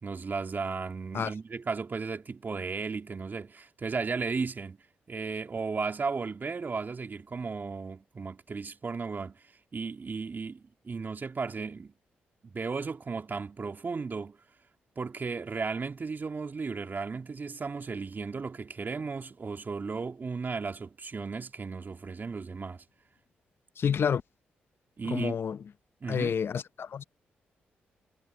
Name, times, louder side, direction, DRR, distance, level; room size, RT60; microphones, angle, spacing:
voice 1, 0.0-4.8 5.1-9.4 9.7-11.9 12.4-14.4 15.0-22.8 25.0-25.4 26.0-26.4, right 4 dB, 45° right, 2.5 m, -35 dB
voice 2, 23.8-24.2 25.1-25.6 26.1-27.0, left 7 dB, 60° left, 0.6 m, -29 dB
supercardioid pair, 45°, 5 cm